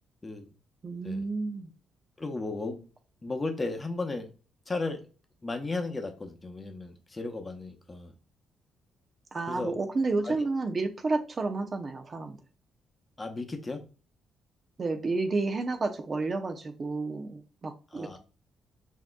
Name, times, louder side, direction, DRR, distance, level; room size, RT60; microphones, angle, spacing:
voice 1, 0.8-1.7 9.3-12.4 14.8-18.2, right 3 dB, 35° right, 0.6 m, -31 dB
voice 2, 2.2-2.9 3.2-4.3 4.7-5.1 5.4-8.1 9.5-9.8 10.2-10.4 13.2-13.8 17.9-18.2, left 3 dB, 25° left, 0.8 m, -35 dB
5.9 x 2.8 x 2.2 m
cardioid pair, 90°, 0 cm